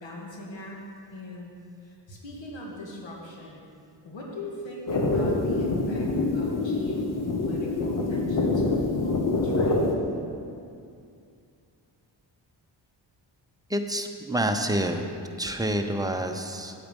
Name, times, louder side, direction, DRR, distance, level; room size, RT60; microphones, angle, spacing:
voice 1, 0.0-1.5 1.8-3.7 4.0-9.9, left 1 dB, 85° left, -2 dB, 2.1 m, -41 dB
sound 1, 4.9-9.9, left 2 dB, 45° left, 1.2 m, -25 dB
voice 2, 13.7-15.1 15.4-16.7, right 1 dB, 10° right, 4 dB, 0.7 m, -28 dB
8.4 x 8.3 x 5.4 m, 2.4 s
cardioid pair, 85°, 44 cm